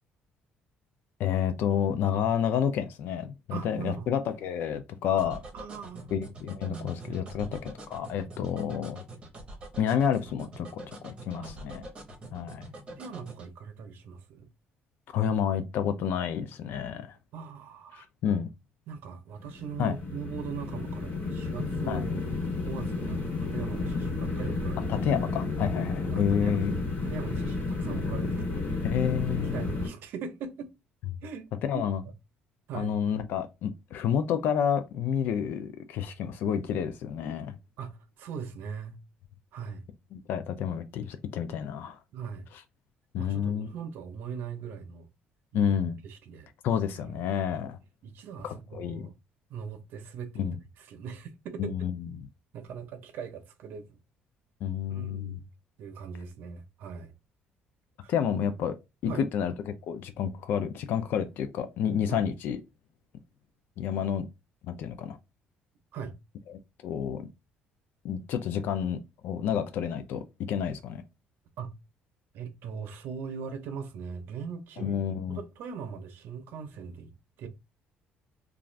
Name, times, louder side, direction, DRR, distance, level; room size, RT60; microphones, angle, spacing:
voice 1, 1.2-5.4 6.1-9.0 9.8-11.8 12.3-12.7 15.1-17.2 17.9-18.5 19.8-20.0 21.9-22.0 24.9-26.8 28.8-29.6 31.6-32.0 32.7-37.6 40.1-42.0 43.1-43.7 45.5-46.0 46.6-47.8 48.4-49.1 50.4-50.6 51.6-52.3 54.6-55.4 58.1-58.7 59.0-62.6 63.8-64.3 64.7-65.2 66.5-67.2 68.0-70.2 70.5-71.0 74.8-75.4, left 8 dB, 65° left, 0.4 m, -29 dB
voice 2, 3.5-4.1 5.5-6.1 6.6-7.5 11.4-11.6 13.0-14.5 17.3-18.1 18.9-22.1 22.6-24.9 26.1-28.7 29.2-30.7 31.2-31.9 32.7-33.0 37.8-39.0 39.5-39.8 42.1-42.5 43.2-45.1 45.5-45.7 46.0-46.5 47.0-47.2 48.0-49.1 49.5-50.5 50.8-51.7 52.5-54.0 54.9-55.4 55.8-57.1 58.0-58.1 59.1-59.2 62.1-62.3 65.9-66.1 71.6-71.7 72.3-75.0 75.3-77.1 77.4-77.5, right 6 dB, 70° right, 0.6 m, -40 dB
sound 1, 5.2-13.5, right 2 dB, 30° right, 0.9 m, -44 dB
sound 2, 19.4-29.9, left 3 dB, 50° left, 1.5 m, -32 dB
2.4 x 2.4 x 3.2 m
cardioid pair, 130°, 4 cm